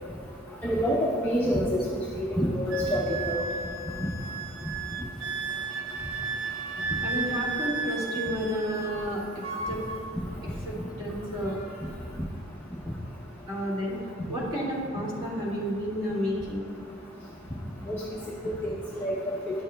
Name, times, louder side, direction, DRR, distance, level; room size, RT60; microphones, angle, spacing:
voice 1, 0.6-1.0 1.2-1.8 2.2-3.4 17.9-18.0 19.0-19.3, equal, 10° left, -6 dB, 0.6 m, -26 dB
Wind instrument woodwind instrument, 2.7-9.1 9.4-10.0, right 4 dB, 75° right, 0.5 m, -34 dB
voice 2, 7.0-9.2 9.7-9.8 10.7-11.6 13.5-16.7, equal, 25° right, -7 dB, 2.0 m, -31 dB
11.0 x 7.0 x 2.2 m, 2.2 s
head